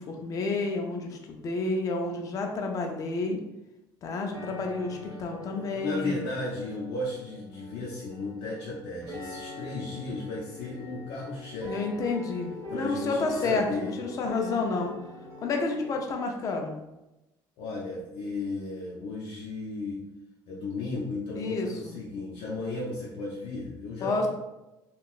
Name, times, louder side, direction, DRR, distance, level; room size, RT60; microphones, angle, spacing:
voice 1, 0.0-3.4 4.0-6.1 11.7-13.7 14.0-14.9 15.4-16.8 21.3-22.0 24.0-24.3, left 3 dB, 40° left, 2 dB, 0.5 m, -30 dB
sound 1, 4.3-16.0, left 1 dB, 40° right, 0.9 m, -43 dB
voice 2, 5.5-11.8 12.7-14.0 17.6-20.1 20.5-24.3, left 2 dB, 75° left, -5 dB, 0.7 m, -35 dB
3.7 x 2.4 x 2.4 m, 0.97 s
cardioid pair, 150°, 9 cm